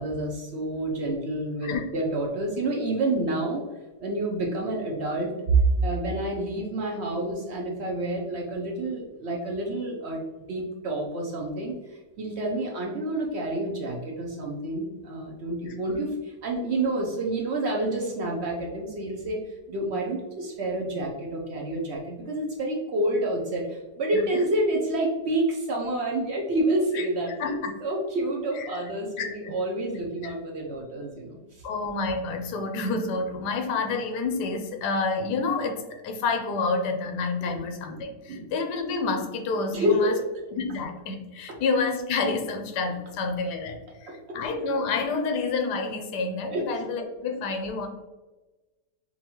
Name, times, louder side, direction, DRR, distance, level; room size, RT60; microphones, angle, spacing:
voice 1, 0.0-3.6 4.0-31.6 37.4-37.6 38.3-38.5 39.7-40.2 41.5-41.6 44.3-44.4 46.5-46.7, right 2 dB, 65° right, -1 dB, 0.7 m, -28 dB
voice 2, 15.6-16.0 24.1-24.4 26.9-27.1 27.4-27.7 28.6-28.8 29.2-29.5 30.2-30.3 31.6-40.1 40.6-47.9, left 4 dB, 85° left, 4 dB, 1.3 m, -29 dB
5.4 x 2.3 x 3.0 m, 1.1 s
omnidirectional pair, 1.8 m